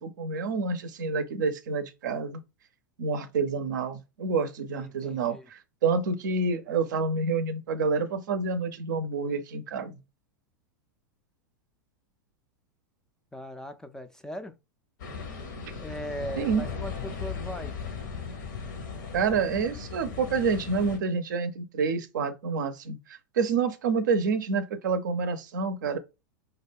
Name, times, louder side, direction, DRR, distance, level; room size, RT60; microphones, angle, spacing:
voice 1, 0.0-2.4 3.0-10.0 16.4-16.6 19.1-26.0, right 4 dB, 65° right, 0.5 m, -28 dB
voice 2, 4.7-5.5 13.3-14.6 15.8-17.8, equal, 5° left, 0.3 m, -39 dB
sound 1, 15.0-21.0, left 5 dB, 65° left, 0.7 m, -37 dB
2.3 x 2.2 x 3.3 m
figure-of-eight pair, 90°, 11 cm